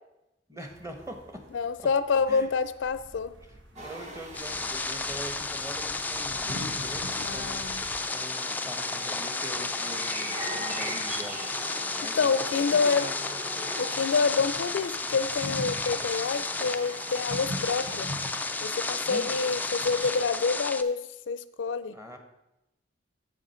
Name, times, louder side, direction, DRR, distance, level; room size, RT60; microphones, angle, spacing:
voice 1, 0.5-1.4 1.8-1.9 2.3-2.5 3.4-7.7 8.1-11.4 11.9-13.1 19.0-19.3 21.9-22.2, equal, 15° right, 5 dB, 1.2 m, -43 dB
sound 1, 0.7-8.0, equal, 80° right, 1.2 m, -52 dB
voice 2, 1.5-3.3 7.2-7.8 12.2-13.1 13.8-18.1 18.6-22.0, left 5 dB, 90° left, 13 dB, 0.5 m, -27 dB
sound 2, 3.8-20.2, right 1 dB, 40° right, 1.3 m, -40 dB
sound 3, 4.3-20.8, left 3 dB, 10° left, 0.3 m, -33 dB
7.3 x 7.2 x 5.7 m, 0.90 s
head